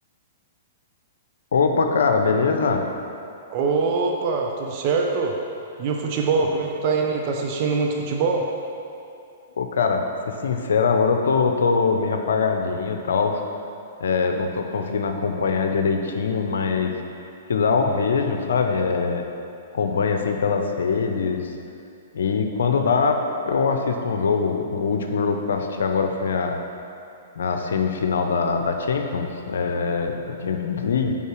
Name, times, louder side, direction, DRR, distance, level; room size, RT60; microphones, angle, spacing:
voice 1, 1.5-2.8 9.6-13.4 14.0-16.9 17.5-19.2 19.7-21.5 22.1-26.6 27.4-31.2, left 5 dB, 75° left, 5 dB, 0.6 m, -22 dB
voice 2, 3.5-5.4 5.8-8.5, right 4 dB, 45° right, 1 dB, 0.7 m, -23 dB
5.5 x 5.0 x 6.1 m, 2.6 s
hypercardioid pair, 120°, 0 cm